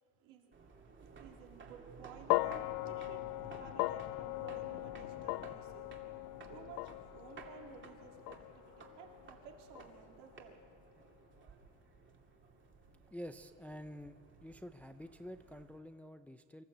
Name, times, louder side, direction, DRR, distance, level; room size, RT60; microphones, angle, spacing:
voice 1, 0.2-0.5 1.2-5.9 6.5-10.6, right 6 dB, 75° right, 1 dB, 3.7 m, -55 dB
sound 1, 0.5-15.8, right 4 dB, 25° right, 2.6 m, -56 dB
sound 2, 2.3-10.6, left 20 dB, 55° left, 0.5 m, -39 dB
voice 2, 13.1-14.2 14.4-16.6, equal, 5° left, 9 dB, 0.5 m, -48 dB
25.0 x 14.0 x 8.1 m, 2.2 s
cardioid pair, 125°, 44 cm